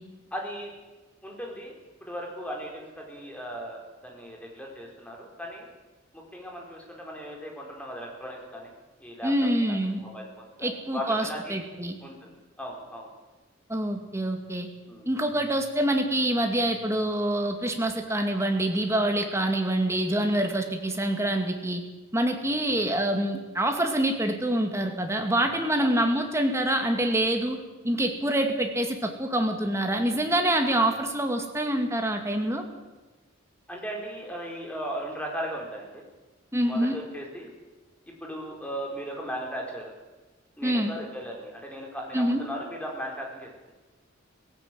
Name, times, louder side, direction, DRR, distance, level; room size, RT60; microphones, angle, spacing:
voice 1, 0.3-0.7 1.2-1.8 2.0-5.7 6.1-8.7 9.0-9.3 9.8-11.6 12.0-13.1 14.9-15.3 22.4-22.6 25.8-25.9 33.7-36.0 36.6-37.5 38.2-39.9 40.6-43.7, equal, 5° left, 0 dB, 4.5 m, -37 dB
voice 2, 9.2-10.0 10.6-12.0 13.7-14.7 15.1-21.8 22.1-27.6 27.8-32.6 36.5-37.0 40.6-40.9 42.1-42.4, right 1 dB, 15° right, 4 dB, 2.3 m, -26 dB
17.5 x 16.5 x 9.3 m, 1.2 s
head